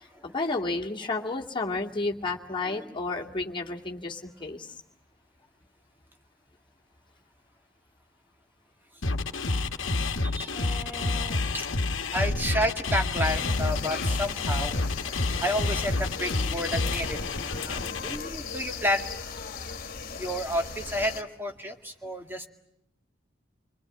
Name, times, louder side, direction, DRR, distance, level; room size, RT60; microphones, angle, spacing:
voice 1, 0.0-4.7 18.0-18.1, left 3 dB, 25° left, -1 dB, 2.3 m, -32 dB
sound 1, 9.0-18.2, left 3 dB, 90° left, 1.3 m, -29 dB
voice 2, 9.9-11.7 12.1-14.8 15.4-19.2 20.2-22.5, equal, 10° right, 4 dB, 2.1 m, -31 dB
sound 2, 13.2-21.2, left 5 dB, 50° left, 1.9 m, -38 dB
28.5 x 21.5 x 8.9 m, 0.81 s
head